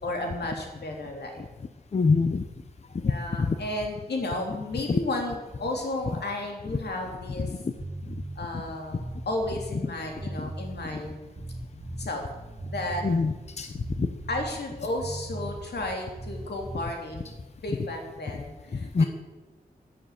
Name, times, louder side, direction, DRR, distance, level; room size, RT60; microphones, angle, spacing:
voice 1, 0.0-1.4 3.0-7.6 8.3-11.2 12.0-12.2 12.7-13.0 14.3-17.2 17.6-19.1, left 1 dB, 85° left, 1 dB, 3.2 m, -33 dB
voice 2, 1.9-2.4 3.0-3.1 3.4-3.6 4.9-5.0 7.5-7.6 13.0-13.7 14.0-14.1 18.9-19.0, left 4 dB, 40° left, 8 dB, 0.7 m, -23 dB
sound 1, 7.8-17.4, right 2 dB, 35° right, 2.5 m, -39 dB
14.0 x 7.6 x 8.5 m, 1.2 s
wide cardioid pair, 130°, 17 cm